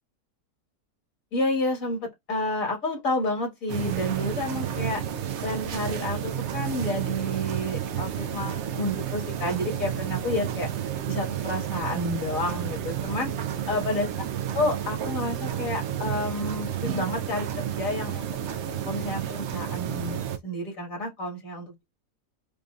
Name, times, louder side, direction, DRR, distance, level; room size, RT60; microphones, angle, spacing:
voice 1, 1.3-5.0 5.4-10.7 11.1-13.3 13.7-14.1 14.5-18.3 18.9-20.2 20.4-21.8, left 1 dB, 55° left, 2.1 m, -30 dB
sound 1, 3.7-20.4, right 9 dB, 70° right, 0.7 m, -31 dB
4.9 x 2.6 x 2.4 m
omnidirectional pair, 1.7 m